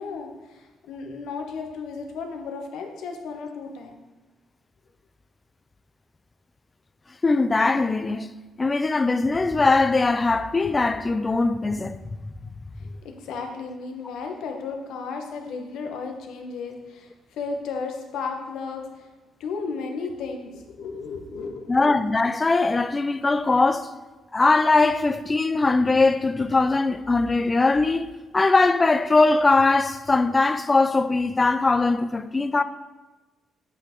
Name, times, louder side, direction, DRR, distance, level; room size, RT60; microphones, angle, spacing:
voice 1, 0.0-4.0 12.8-18.8 19.4-21.8, left 4 dB, 80° left, 1.1 m, -34 dB
voice 2, 7.2-8.3 8.6-12.0 21.7-23.9 24.3-32.6, left 3 dB, 20° left, 0.3 m, -21 dB
8.3 x 5.8 x 3.7 m
cardioid pair, 150°, 0 cm